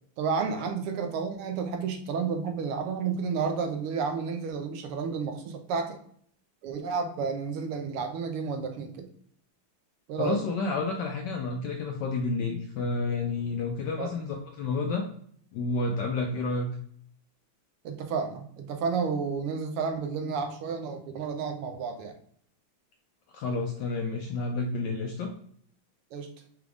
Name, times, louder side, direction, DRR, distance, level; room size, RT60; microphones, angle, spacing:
voice 1, 0.2-6.0 6.6-9.1 10.1-10.4 14.0-14.1 17.8-22.1 26.1-26.3, right 5 dB, 90° right, 5 dB, 1.6 m, -31 dB
voice 2, 10.2-15.0 15.5-16.7 23.3-25.3, left 3 dB, 75° left, 2 dB, 1.0 m, -30 dB
4.9 x 2.4 x 3.4 m, 0.62 s
omnidirectional pair, 2.4 m